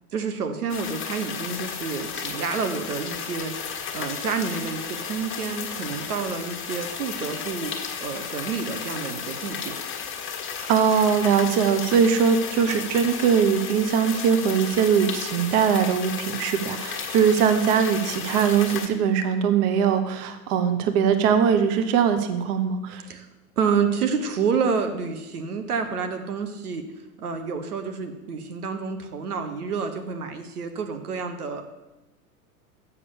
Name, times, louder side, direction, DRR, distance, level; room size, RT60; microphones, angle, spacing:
voice 1, 0.1-9.7 23.0-23.3 23.6-26.8 27.2-31.6, right 5 dB, 80° right, 7 dB, 1.2 m, -29 dB
sound 1, 0.7-18.9, left 7 dB, 25° left, 1.4 m, -34 dB
voice 2, 10.7-23.0, right 7 dB, 45° right, 8 dB, 1.0 m, -21 dB
6.9 x 6.8 x 7.1 m, 1.0 s
hypercardioid pair, 95°, 46 cm